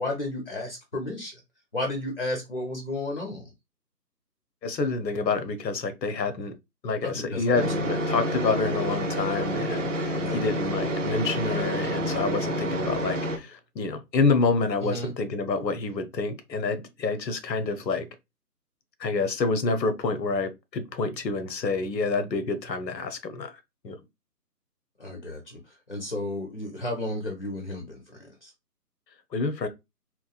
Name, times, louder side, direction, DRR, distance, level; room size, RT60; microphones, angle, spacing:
voice 1, 0.0-1.3 1.7-3.5 7.0-7.7 10.1-10.5 14.8-15.1 25.0-25.6 25.9-28.5, left 1 dB, 35° left, 0.5 m, -33 dB
voice 2, 4.6-6.5 6.8-18.1 19.0-24.0 29.3-29.7, left 4 dB, 90° left, 0.7 m, -28 dB
sound 1, 7.5-13.4, equal, 50° right, 0.6 m, -28 dB
2.9 x 2.1 x 2.3 m
figure-of-eight pair, 160°, 49 cm